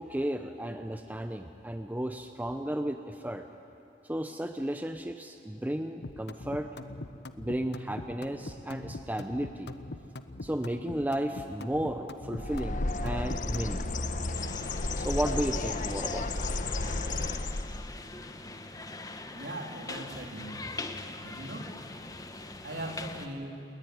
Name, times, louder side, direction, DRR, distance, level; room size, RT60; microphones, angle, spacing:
voice 1, 0.0-3.4 4.0-6.7 7.3-9.7 10.4-14.1 15.0-16.4, right 1 dB, 10° right, 6 dB, 0.8 m, -34 dB
sound 1, 6.0-13.8, left 2 dB, 65° left, 1.1 m, -42 dB
Bird, 12.3-17.9, left 2 dB, 45° left, 1.1 m, -32 dB
sound 2, 14.3-23.3, left 2 dB, 20° left, 1.4 m, -43 dB
voice 2, 19.3-20.7 21.2-21.7 22.6-23.7, right 1 dB, 70° right, 2 dB, 3.7 m, -40 dB
29.5 x 21.0 x 9.5 m, 2.7 s
head